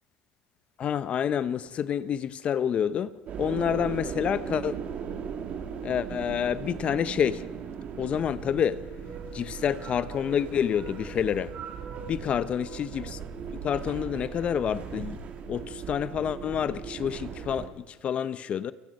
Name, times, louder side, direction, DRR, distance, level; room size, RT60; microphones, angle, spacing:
voice 1, 0.8-3.1 3.4-4.8 5.8-7.4 8.0-8.8 9.3-11.5 12.1-13.2 13.6-15.2 15.5-18.7, left 8 dB, 35° left, 0.7 m, -28 dB
sound 1, 3.3-17.7, right 7 dB, 45° right, 2.6 m, -38 dB
29.5 x 17.0 x 5.3 m
cardioid pair, 135°, 3 cm